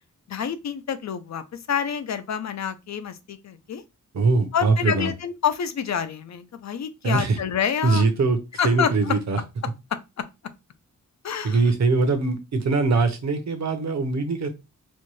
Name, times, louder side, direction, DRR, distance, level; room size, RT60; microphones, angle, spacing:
voice 1, 0.3-3.8 4.5-8.0 8.6-9.1 10.2-10.3 11.2-11.6, left 7 dB, 55° left, 0.4 m, -27 dB
voice 2, 4.1-5.1 7.0-7.4 7.8-8.4 8.6-9.4 11.4-14.5, right 3 dB, 55° right, 0.7 m, -22 dB
4.3 x 2.2 x 3.0 m
wide cardioid pair, 180°, 33 cm